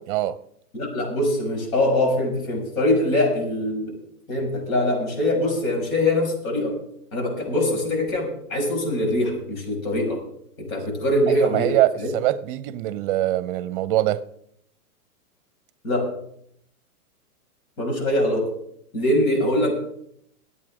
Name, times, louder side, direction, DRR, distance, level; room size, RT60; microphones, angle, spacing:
voice 1, 0.7-4.0 4.3-6.8 7.1-10.2 10.6-12.1 15.8-16.1 17.8-18.5 18.9-19.7, left 1 dB, 65° left, 6.1 m, -23 dB
voice 2, 11.4-14.2, right 14 dB, 35° right, 0.7 m, -23 dB
23.0 x 8.5 x 3.7 m
hypercardioid pair, 135°, 46 cm